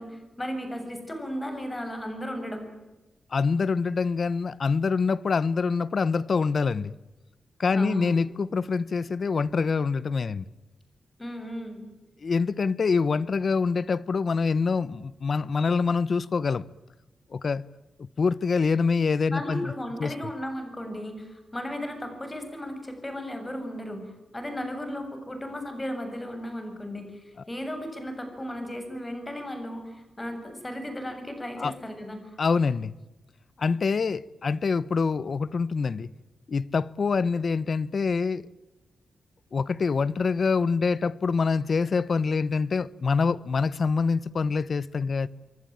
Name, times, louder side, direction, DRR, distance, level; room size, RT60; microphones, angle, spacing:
voice 1, 0.0-2.6 7.7-8.1 11.2-11.8 19.3-24.0 24.3-32.4, equal, 15° left, 7.5 m, -35 dB
voice 2, 3.3-6.9 7.6-10.5 12.2-16.6 17.3-17.6 18.0-19.7 20.0-20.1 31.6-31.7 32.4-32.9 33.6-36.1 36.5-38.4 39.5-45.3, left 5 dB, 50° left, 1.0 m, -25 dB
28.5 x 23.5 x 8.9 m
wide cardioid pair, 130°, 0 cm